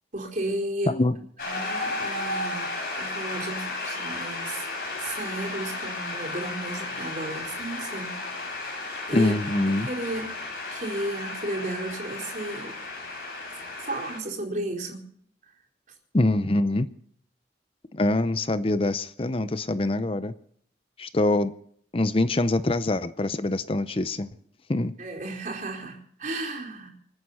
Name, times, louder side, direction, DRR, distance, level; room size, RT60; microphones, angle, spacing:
voice 1, 0.1-0.9 1.4-2.7 3.0-4.7 5.0-8.2 9.1-10.3 10.7-12.7 13.8-15.0 15.4-15.5 25.0-26.9, right 1 dB, 45° right, 0 dB, 4.3 m, -33 dB
Shout / Cheering / Applause, 1.4-14.2, left 2 dB, 55° left, 7.6 m, -34 dB
voice 2, 9.1-9.9 16.1-16.9 17.9-20.3 21.0-21.5 21.9-24.3 24.7-24.9, left 2 dB, 30° left, 13 dB, 0.6 m, -24 dB
26.5 x 9.5 x 5.6 m, 0.62 s
head